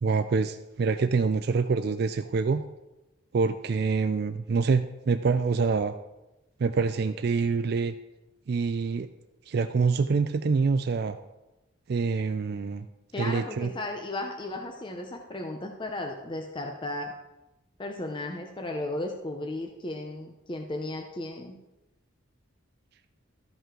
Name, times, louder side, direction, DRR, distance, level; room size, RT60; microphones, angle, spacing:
voice 1, 0.0-2.6 3.3-5.9 6.6-7.9 8.5-9.1 9.5-11.2 11.9-12.9 13.2-13.7, right 4 dB, 50° right, 10 dB, 0.3 m, -26 dB
voice 2, 13.1-17.1 17.8-21.6, left 2 dB, 25° left, 3 dB, 0.6 m, -35 dB
13.5 x 5.4 x 3.7 m, 0.99 s
head